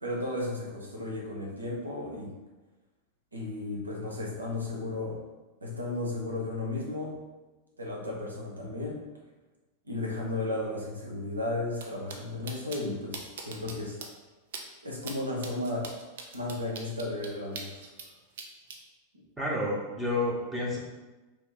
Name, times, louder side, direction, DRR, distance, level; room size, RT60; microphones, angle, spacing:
voice 1, 0.0-2.4 3.3-5.2 5.6-7.2 7.8-9.0 9.9-14.0 14.8-15.9 16.3-17.9, left 2 dB, 80° right, -2 dB, 0.9 m, -34 dB
sound 1, 11.7-11.8 12.1-12.2 12.5-12.8 13.1-13.7 14.0-14.1 14.5-14.6 15.0-15.1 15.4-18.1 18.4-18.8, right 5 dB, 60° right, 0.5 m, -40 dB
voice 2, 19.4-20.8, left 1 dB, 10° right, -4 dB, 1.0 m, -30 dB
3.0 x 2.9 x 3.8 m, 1.1 s
figure-of-eight pair, 90°, 0 cm